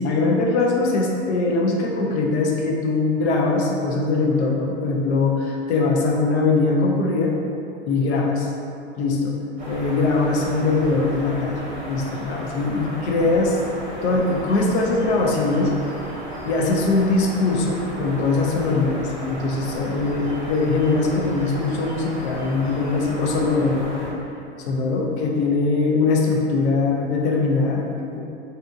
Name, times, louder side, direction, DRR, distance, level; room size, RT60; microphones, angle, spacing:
voice 1, 0.0-7.3 7.9-8.5 9.0-9.4 9.7-11.6 11.9-13.6 14.0-15.7 16.5-24.1 24.6-28.2, left 3 dB, 75° left, 0 dB, 0.6 m, -21 dB
sound 1, 9.6-24.1, right 1 dB, 25° right, 0.7 m, -34 dB
2.8 x 2.5 x 2.3 m, 2.6 s
hypercardioid pair, 115°, 33 cm